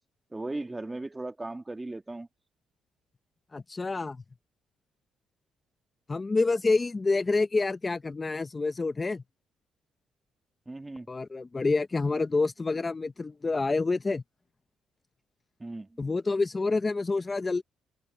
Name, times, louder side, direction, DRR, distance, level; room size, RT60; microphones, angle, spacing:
voice 1, 0.3-2.3 10.7-11.1 15.6-16.0, right 2 dB, 15° right, 1.7 m, -37 dB
voice 2, 3.5-4.2 6.1-9.2 11.1-14.2 16.0-17.6, left 3 dB, 25° left, 0.8 m, -27 dB
cardioid pair, 90°, 0 cm